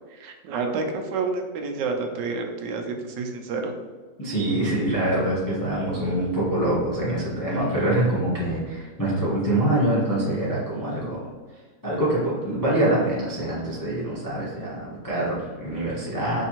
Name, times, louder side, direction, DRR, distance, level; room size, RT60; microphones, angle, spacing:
voice 1, 0.1-3.7, right 4 dB, 90° right, 4 dB, 1.2 m, -29 dB
voice 2, 4.2-11.3 11.8-16.4, right 1 dB, 20° left, -8 dB, 0.6 m, -25 dB
4.3 x 2.7 x 2.9 m, 1.4 s
omnidirectional pair, 1.8 m